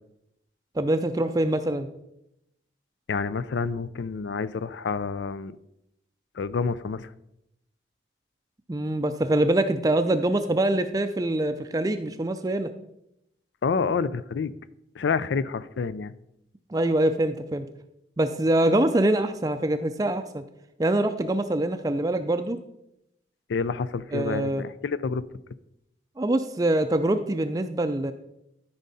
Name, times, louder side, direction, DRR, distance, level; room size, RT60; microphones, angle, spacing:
voice 1, 0.8-1.9 8.7-12.7 16.7-17.7 18.2-20.4 20.8-22.6 24.1-24.6 26.2-28.1, right 1 dB, 20° right, 8 dB, 0.4 m, -24 dB
voice 2, 3.1-5.6 6.4-7.1 13.6-14.5 15.0-16.1 23.5-25.2, left 5 dB, 85° left, 16 dB, 0.4 m, -28 dB
13.0 x 5.3 x 4.1 m, 0.83 s
head